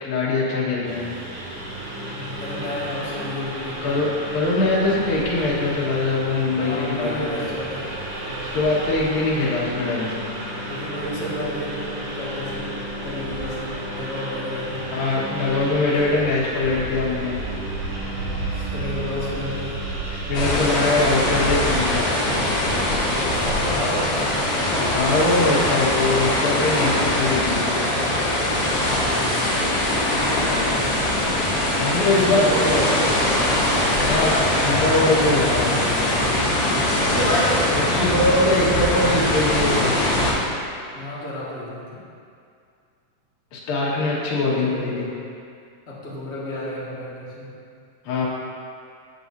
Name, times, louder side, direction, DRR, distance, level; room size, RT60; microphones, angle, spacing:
voice 1, 0.0-1.0 3.8-7.4 8.5-10.3 14.9-17.3 20.1-22.1 24.9-27.6 30.5-30.8 31.8-32.5 34.1-36.2 37.7-39.9 43.5-45.1 48.0-48.3, left 2 dB, 90° left, -5 dB, 3.4 m, -22 dB
voice 2, 0.7-1.0 2.1-4.0 6.6-7.9 8.3-8.6 10.7-12.7 13.0-14.8 18.0-19.8 23.1-25.2 28.7-29.7 31.9-33.2 33.7-34.1 38.3-39.4 40.9-42.0 44.4-45.2 45.9-47.5, equal, 30° left, -7 dB, 1.3 m, -32 dB
Engine, 0.8-20.4, right 1 dB, 65° right, 3.4 m, -32 dB
sound 1, 20.3-40.3, left 1 dB, 50° left, 2.4 m, -21 dB
14.5 x 7.7 x 2.7 m, 2.3 s
omnidirectional pair, 3.9 m